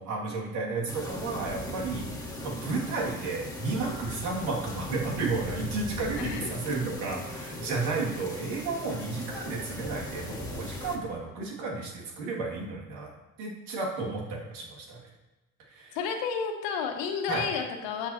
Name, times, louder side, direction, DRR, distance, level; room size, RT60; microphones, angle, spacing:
voice 1, 0.0-13.1 13.4-15.0 15.7-16.0 17.3-17.5, right 3 dB, 80° right, -3 dB, 2.4 m, -32 dB
sound 1, 0.9-11.0, left 2 dB, 10° left, 1.9 m, -39 dB
voice 2, 6.1-6.5 15.9-18.1, left 6 dB, 75° left, 4 dB, 1.4 m, -31 dB
13.0 x 5.9 x 2.9 m, 1.1 s
supercardioid pair, 70°, 45 cm